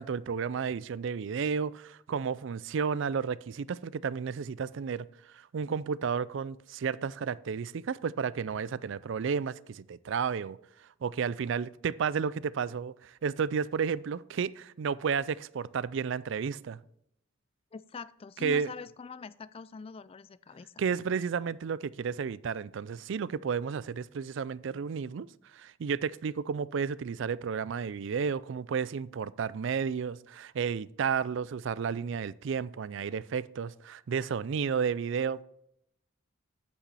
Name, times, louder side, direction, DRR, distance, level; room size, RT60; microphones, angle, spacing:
voice 1, 0.0-5.1 5.3-10.6 11.0-16.8 18.4-18.7 20.8-25.3 25.5-35.4, right 6 dB, 65° right, 0.4 m, -32 dB
voice 2, 17.7-20.8, left 4 dB, 30° left, 0.3 m, -44 dB
8.7 x 8.3 x 4.2 m
head